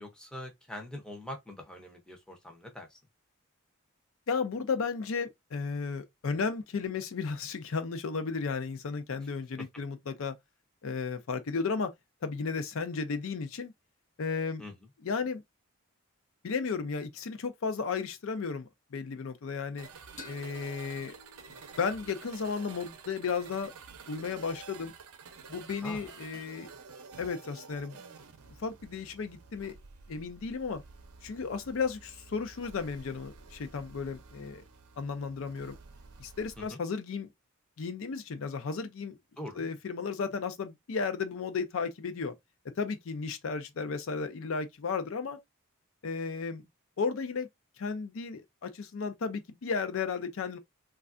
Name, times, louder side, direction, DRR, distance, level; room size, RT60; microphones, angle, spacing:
voice 1, 0.0-3.0 9.6-9.7 14.6-14.9 25.8-26.1 36.6-36.8 39.4-39.6, left 1 dB, 5° left, 0.6 m, -43 dB
voice 2, 4.3-10.3 10.8-11.9 12.2-13.7 14.2-14.6 15.0-15.4 16.4-19.9 20.3-21.2 21.8-23.7 24.1-24.9 25.5-26.7 27.2-28.0 28.6-29.7 30.1-30.8 31.2-34.6 35.0-35.8 36.2-37.3 37.8-39.2 39.6-42.3 42.8-45.4 46.0-46.6 47.0-47.5 47.8-50.6, left 5 dB, 65° left, 0.5 m, -34 dB
sound 1, 19.8-36.7, right 5 dB, 80° right, 0.6 m, -50 dB
sound 2, 20.2-23.5, left 3 dB, 35° left, 0.9 m, -54 dB
3.2 x 2.4 x 2.4 m
head